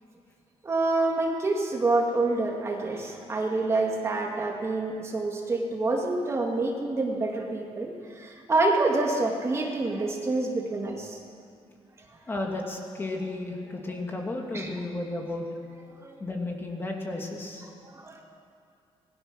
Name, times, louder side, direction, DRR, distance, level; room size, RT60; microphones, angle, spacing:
voice 1, 0.6-11.2 14.5-14.7 16.0-16.2 17.8-18.2, right 2 dB, 25° right, 0 dB, 2.2 m, -27 dB
voice 2, 12.3-15.5 16.2-17.7, left 2 dB, 20° left, 0 dB, 2.6 m, -33 dB
26.0 x 20.5 x 6.3 m, 2.3 s
cardioid pair, 170°, 11 cm